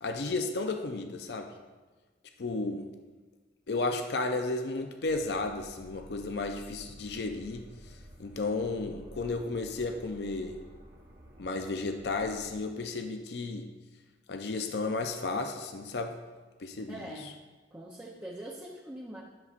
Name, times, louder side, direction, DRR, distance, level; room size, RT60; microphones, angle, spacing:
voice 1, 0.0-1.5 2.4-2.9 3.7-7.7 8.2-10.6 11.4-13.7 14.3-16.2 16.6-17.2, left 3 dB, 70° left, 5 dB, 0.5 m, -33 dB
sound 1, 5.1-12.6, equal, 70° right, 1.2 m, -52 dB
voice 2, 16.9-17.3 17.7-19.2, right 1 dB, 10° right, -4 dB, 0.6 m, -43 dB
11.0 x 6.7 x 2.5 m, 1.3 s
head